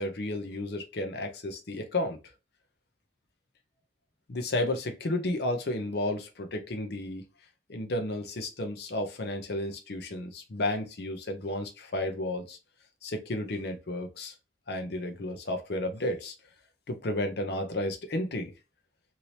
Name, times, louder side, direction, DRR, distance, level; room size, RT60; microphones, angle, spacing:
voice 1, 0.0-2.2 4.3-7.2 7.7-12.6 13.0-14.3 14.7-16.3 16.9-18.5, left 1 dB, 65° left, 0.7 m, -32 dB
2.8 x 2.8 x 3.1 m
head